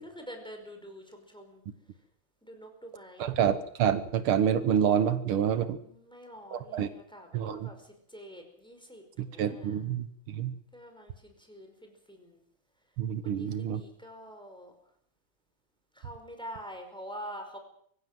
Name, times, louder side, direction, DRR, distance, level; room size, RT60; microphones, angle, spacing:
voice 1, 0.0-1.6 2.4-3.3 5.8-9.8 10.7-12.4 13.2-14.7 15.9-17.6, equal, ahead, 4 dB, 5.0 m, -46 dB
voice 2, 3.2-5.8 6.5-6.9 7.3-7.7 9.2-10.5 13.0-13.8, right 8 dB, 80° right, 12 dB, 2.0 m, -28 dB
24.5 x 15.5 x 7.5 m, 0.65 s
omnidirectional pair, 2.3 m